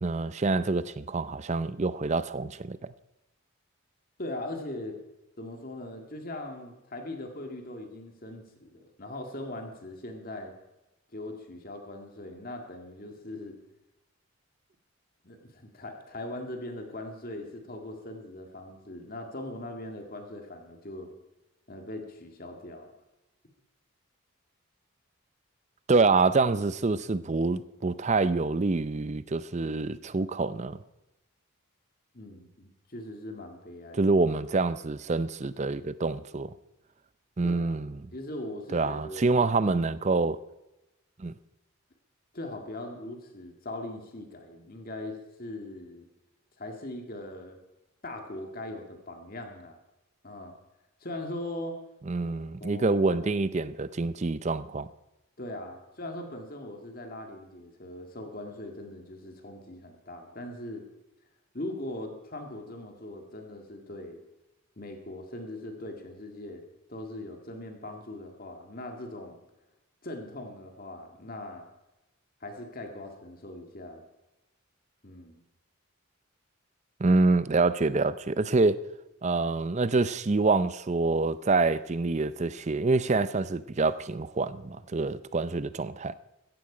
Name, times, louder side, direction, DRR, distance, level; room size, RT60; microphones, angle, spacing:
voice 1, 0.0-2.8 25.9-30.8 33.9-36.5 37.4-38.0 38.7-40.4 41.2-41.3 52.1-54.9 77.0-78.8 79.2-86.1, right 3 dB, 30° right, 0.5 m, -26 dB
voice 2, 4.2-5.0 5.4-10.5 11.1-13.6 15.2-21.1 21.7-22.9 32.1-34.1 37.4-37.8 38.1-39.4 42.3-46.1 46.6-47.6 48.0-49.8 50.2-50.5 51.0-51.8 52.2-53.2 55.4-60.9 61.5-64.2 64.8-66.6 66.9-69.4 70.0-71.7 72.4-74.0 75.0-75.4, left 1 dB, 40° left, 1.9 m, -40 dB
16.0 x 14.0 x 5.0 m
head